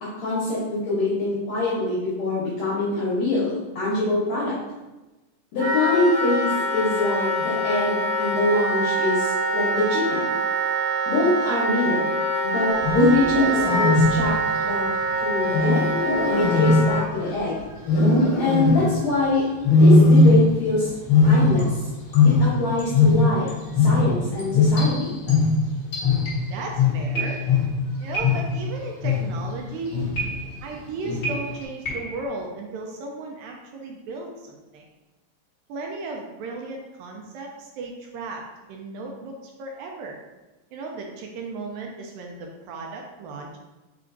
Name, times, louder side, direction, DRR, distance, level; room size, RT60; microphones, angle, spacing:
voice 1, 0.0-4.5 5.5-10.3 11.1-12.1 12.4-14.4 14.6-14.9 15.2-15.9 16.3-17.6 18.4-19.4 19.7-20.9 21.2-21.8 22.2-23.5 23.8-25.2, left 2 dB, 70° left, -7 dB, 1.7 m, -24 dB
Wind instrument woodwind instrument, 5.6-17.0, right 1 dB, 65° right, 1.9 m, -25 dB
Wild animals, 12.7-14.4 15.5-17.4 17.8-19.0 19.6-20.7 21.0-23.5 23.7-28.6 29.0-29.5 29.9-30.3 31.0-31.5, left 3 dB, 85° left, 1.1 m, -19 dB
sound 1, 20.1-20.3 20.8-21.1 21.6-22.5 22.8-23.0 23.5-23.7 24.4-26.6 27.1-27.7 28.1-28.7 30.1-30.7 31.2-32.3, right 2 dB, 50° left, 0.8 m, -34 dB
voice 2, 26.5-27.4 28.0-30.1 30.6-34.9 35.7-38.4 38.7-40.2 40.7-43.6, right 3 dB, 80° right, 1 dB, 2.2 m, -35 dB
4.7 x 4.3 x 2.5 m, 1.1 s
omnidirectional pair, 4.2 m